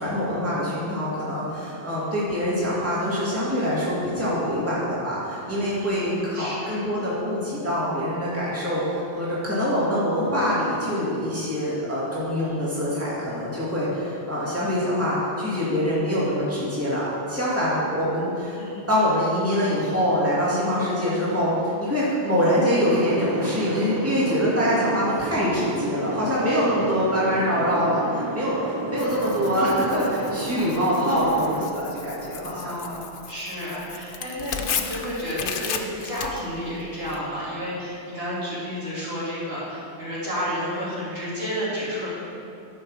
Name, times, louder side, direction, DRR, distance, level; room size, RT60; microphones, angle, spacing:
voice 1, 0.0-18.6 18.9-32.8, equal, 10° right, -9 dB, 2.3 m, -24 dB
voice 2, 5.6-6.0 6.3-6.8 18.5-18.9 32.4-33.0 33.3-42.1, equal, 55° right, -9 dB, 3.2 m, -31 dB
sound 1, 22.9-31.7, right 2 dB, 30° right, 0.5 m, -31 dB
Tearing, 29.0-37.2, left 7 dB, 85° left, 1.0 m, -35 dB
11.5 x 5.6 x 6.3 m, 2.7 s
omnidirectional pair, 1.2 m